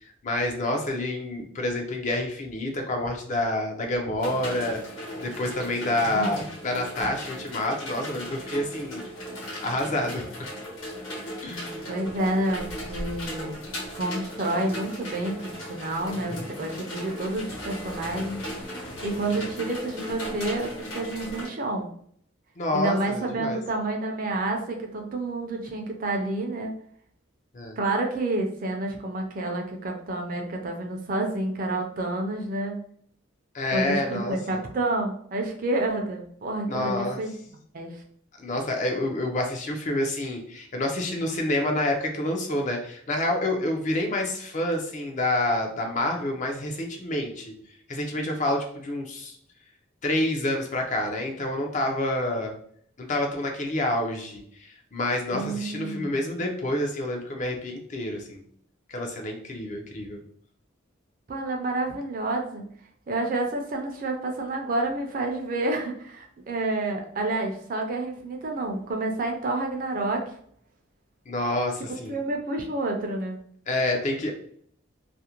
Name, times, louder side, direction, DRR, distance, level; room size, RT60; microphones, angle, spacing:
voice 1, 0.2-4.8 5.2-9.0 9.6-10.2 11.4-11.9 19.3-19.5 22.6-23.6 27.5-27.8 33.5-34.4 36.7-37.2 38.4-47.5 47.9-49.3 50.0-52.5 53.0-58.4 58.9-60.2 71.3-72.2 73.7-74.3, left 1 dB, 35° left, 2 dB, 0.4 m, -28 dB
sound 1, 4.2-21.5, equal, 70° left, 1.0 m, -37 dB
voice 2, 6.1-6.5 11.9-13.6 13.9-18.4 19.0-21.9 22.7-26.8 27.8-32.8 33.7-37.4 37.7-38.0 55.3-56.2 61.3-62.6 63.1-70.3 72.1-73.4, right 2 dB, 40° right, 2 dB, 0.4 m, -29 dB
2.4 x 2.0 x 2.8 m, 0.62 s
head